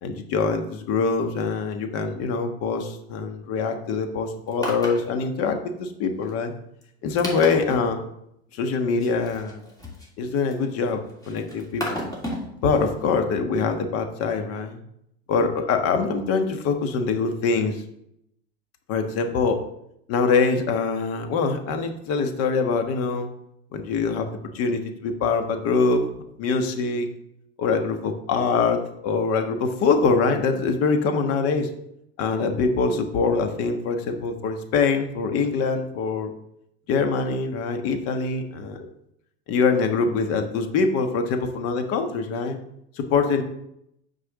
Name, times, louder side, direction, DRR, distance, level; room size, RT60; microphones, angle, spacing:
voice 1, 0.0-6.5 7.0-8.0 8.5-9.6 10.2-12.0 12.6-14.8 15.3-17.8 18.9-19.6 20.1-23.3 23.7-24.3 24.5-26.0 26.4-27.1 27.6-31.7 32.2-36.3 36.9-38.8 39.5-42.6 43.0-43.4, left 4 dB, 50° left, 6 dB, 1.4 m, -24 dB
sound 1, 4.5-5.0 5.5-5.6 6.2-6.3 6.8-6.9 7.2-7.8 9.0-10.7 11.1-12.5 12.8-12.9, equal, 10° left, 2.6 m, -32 dB
6.6 x 4.8 x 6.3 m, 0.76 s
hypercardioid pair, 110°, 31 cm